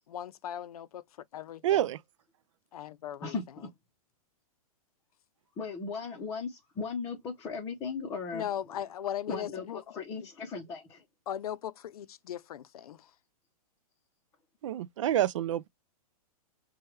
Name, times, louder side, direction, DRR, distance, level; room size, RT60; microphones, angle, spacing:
voice 1, 0.1-1.0 1.3-1.9 2.7-3.3 8.3-9.8 11.3-13.1, left 10 dB, 75° left, 0.6 m, -38 dB
voice 2, 1.6-2.0 14.6-15.7, right 12 dB, 55° right, 0.4 m, -27 dB
voice 3, 3.2-3.7 5.6-8.5 9.3-11.0, left 5 dB, 15° left, 0.7 m, -37 dB
4.6 x 2.3 x 3.1 m
hypercardioid pair, 165°, 19 cm